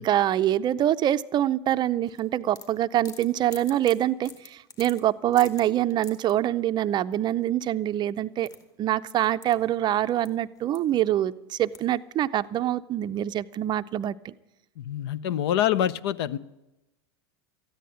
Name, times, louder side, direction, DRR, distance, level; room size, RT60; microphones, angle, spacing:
voice 1, 0.0-8.5 8.8-14.3, right 12 dB, 30° right, 13 dB, 0.5 m, -25 dB
sound 1, 2.1-6.3 7.9-8.0 8.2-10.3 10.5-11.1 11.7-12.1, left 3 dB, 25° left, 2.5 m, -47 dB
voice 2, 14.8-16.4, left 11 dB, 70° left, 18 dB, 0.7 m, -26 dB
14.0 x 10.0 x 9.1 m, 0.94 s
hypercardioid pair, 110°, 14 cm